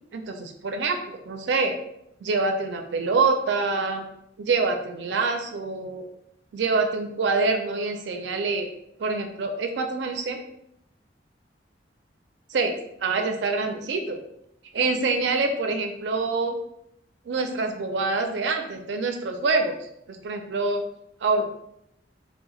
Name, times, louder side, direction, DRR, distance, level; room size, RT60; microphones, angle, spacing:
voice 1, 0.1-1.7 2.2-4.0 4.4-6.0 6.5-8.7 9.0-10.4 12.5-12.8 13.0-14.2 14.7-16.6 17.3-19.8 20.1-20.8 21.2-21.5, right 3 dB, 85° right, 5 dB, 0.4 m, -25 dB
2.7 x 2.1 x 3.0 m, 0.78 s
head